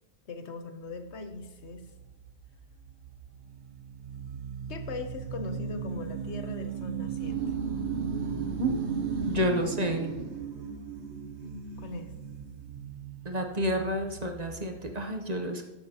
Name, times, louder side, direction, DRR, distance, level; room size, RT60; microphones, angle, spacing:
voice 1, 0.2-1.8 4.7-7.5 11.4-12.1, left 4 dB, 80° left, 7 dB, 1.3 m, -40 dB
sound 1, 0.9-15.1, right 6 dB, 80° right, 1.1 m, -37 dB
voice 2, 9.3-10.1 13.2-15.7, equal, 40° right, 4 dB, 1.0 m, -29 dB
13.0 x 10.5 x 2.9 m, 1.1 s
omnidirectional pair, 1.1 m